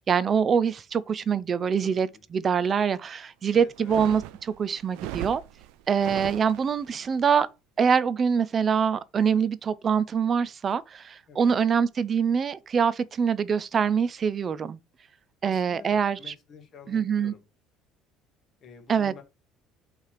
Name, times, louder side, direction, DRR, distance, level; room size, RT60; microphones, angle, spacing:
voice 1, 0.1-2.1 2.3-5.4 5.9-7.5 7.8-14.8 15.4-16.2 16.9-17.3 18.9-19.1, right 7 dB, 30° right, 0.4 m, -24 dB
voice 2, 1.8-2.2 3.5-4.0 11.3-11.6 15.4-17.4 18.6-19.2, left 5 dB, 35° left, 1.9 m, -48 dB
sound 1, 3.7-7.0, right 14 dB, 90° right, 0.4 m, -38 dB
5.6 x 3.3 x 5.7 m
cardioid pair, 145°, 0 cm